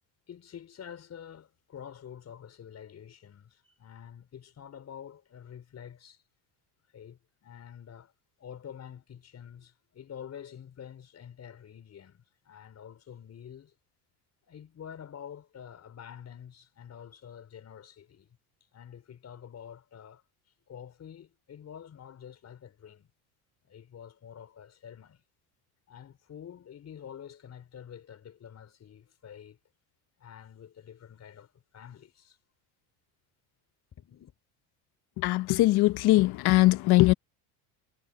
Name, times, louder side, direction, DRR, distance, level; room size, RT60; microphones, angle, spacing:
voice 1, 0.3-6.2 6.9-8.1 8.4-13.7 14.4-18.3 18.7-20.2 20.7-23.1 23.6-25.2 25.9-29.6 30.2-32.4 33.9-34.3, left 8 dB, 35° left, 5.1 m, -47 dB
voice 2, 35.2-37.1, left 18 dB, 60° left, 1.0 m, -21 dB
cardioid pair, 140°, 45 cm